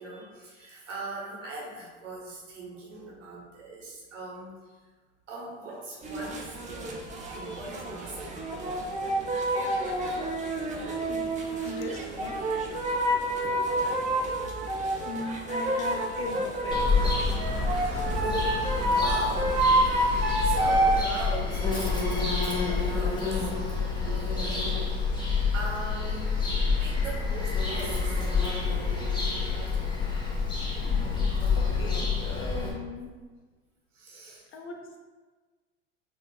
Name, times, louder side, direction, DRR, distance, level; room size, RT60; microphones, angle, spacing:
voice 1, 0.0-4.8 5.3-6.9 7.3-8.4 8.7-8.8 14.4-14.5 15.6-15.7 17.9-23.5 23.9-25.1 25.5-28.8 33.9-34.4, right 2 dB, 85° right, -3 dB, 1.0 m, -40 dB
sound 1, 6.0-21.0, right 1 dB, 20° right, 0.6 m, -28 dB
voice 2, 11.6-12.4 15.0-16.8 17.6-17.8 30.4-31.2 31.5-33.1 34.5-35.0, left 3 dB, 35° left, 2 dB, 0.6 m, -39 dB
Bird vocalization bird call bird song, 16.7-32.7, left 4 dB, 10° left, 1.1 m, -28 dB
5.3 x 2.4 x 2.3 m, 1.3 s
hypercardioid pair, 80°, 36 cm